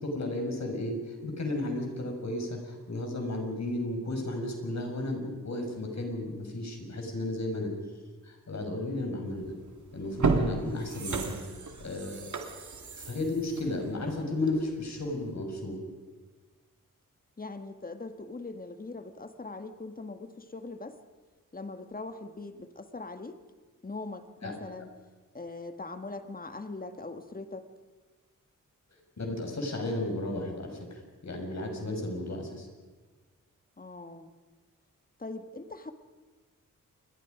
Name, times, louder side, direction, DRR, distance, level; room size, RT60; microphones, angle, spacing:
voice 1, 0.0-7.7 8.2-9.5 9.9-11.4 11.8-12.3 13.1-15.8 24.4-24.5 29.2-32.7, left 1 dB, 55° left, 3 dB, 5.8 m, -33 dB
sound 1, 9.4-9.6 10.0-14.7 15.1-15.2, right 4 dB, 60° right, 2.6 m, -32 dB
voice 2, 17.4-21.0 21.5-23.4 23.8-24.9 25.3-27.7 33.8-34.3 35.2-35.9, left 3 dB, 25° left, 8 dB, 1.9 m, -41 dB
28.5 x 22.0 x 5.2 m, 1.3 s
cardioid pair, 70°, 33 cm